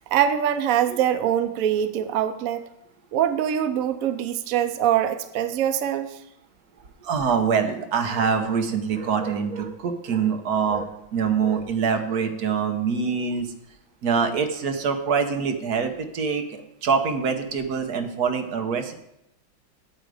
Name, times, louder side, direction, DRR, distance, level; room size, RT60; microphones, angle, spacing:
voice 1, 0.1-2.6 3.1-6.2, right 10 dB, 85° right, 10 dB, 0.7 m, -23 dB
voice 2, 7.0-13.5 14.0-18.9, right 6 dB, 55° right, 6 dB, 1.2 m, -25 dB
9.0 x 8.0 x 4.9 m, 0.83 s
omnidirectional pair, 2.2 m